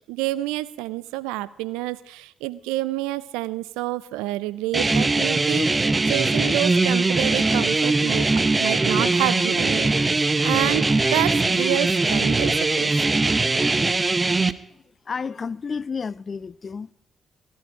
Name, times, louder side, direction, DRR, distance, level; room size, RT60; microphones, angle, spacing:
voice 1, 0.1-10.9 11.1-13.0, right 17 dB, 85° right, 0.5 m, -28 dB
sound 1, 4.7-14.5, right 3 dB, 30° right, 0.9 m, -21 dB
voice 2, 15.1-16.9, left 5 dB, 45° left, 0.5 m, -31 dB
18.0 x 10.5 x 4.8 m
hypercardioid pair, 45°, 0 cm